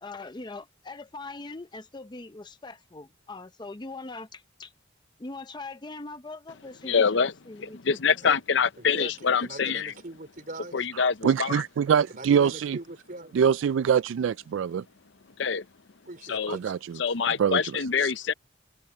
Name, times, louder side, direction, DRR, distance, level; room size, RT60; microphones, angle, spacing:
voice 1, 0.0-4.7 5.2-8.0, left 3 dB, 20° left, 0.6 m, -41 dB
voice 2, 6.8-7.3 7.6-9.9 10.7-11.6 15.4-15.6 16.3-16.6 17.0-18.3, left 6 dB, 60° left, 0.6 m, -25 dB
voice 3, 9.4-10.9 12.1-13.4 16.1-16.7, right 2 dB, 45° right, 4.1 m, -41 dB
voice 4, 11.2-12.8 13.3-14.8 16.5-17.0 17.4-17.7 18.0-18.1, right 7 dB, 70° right, 0.3 m, -24 dB
head